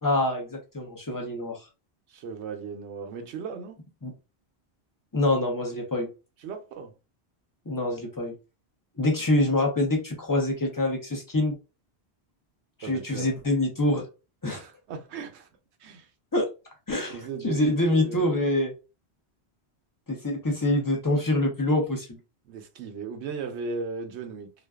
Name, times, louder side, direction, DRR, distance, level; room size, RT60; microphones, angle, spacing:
voice 1, 0.0-1.6 4.0-4.1 5.1-6.1 7.7-8.3 9.0-11.6 12.8-14.1 14.4-14.6 16.3-16.5 16.9-18.7 20.1-22.1, left 1 dB, 25° left, 0.5 m, -25 dB
voice 2, 2.1-3.8 6.4-7.0 12.8-13.3 14.4-15.5 15.8-16.1 17.1-18.4 22.4-24.5, right 5 dB, 90° right, 0.9 m, -37 dB
2.4 x 2.2 x 2.2 m
omnidirectional pair, 1.1 m